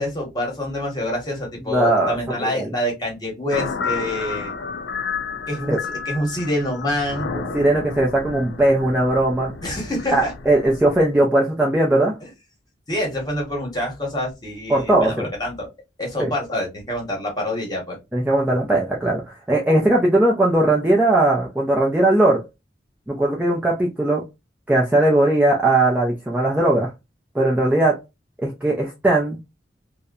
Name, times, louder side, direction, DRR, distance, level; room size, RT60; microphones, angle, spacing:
voice 1, 0.0-4.5 5.5-7.3 9.6-10.3 12.2-12.3 12.9-15.1 15.4-15.7 16.0-18.0, left 1 dB, 25° left, -1 dB, 1.0 m, -26 dB
voice 2, 1.7-2.2 2.5-2.7 5.7-5.8 7.5-9.5 10.1-12.1 14.7-15.3 16.2-16.3 18.1-22.4 23.1-24.2 24.7-26.9 27.3-28.0 28.4-29.4, right 1 dB, 10° right, -3 dB, 0.4 m, -19 dB
sound 1, 3.5-11.1, left 5 dB, 75° left, 0.5 m, -31 dB
2.7 x 2.1 x 2.3 m, 0.23 s
head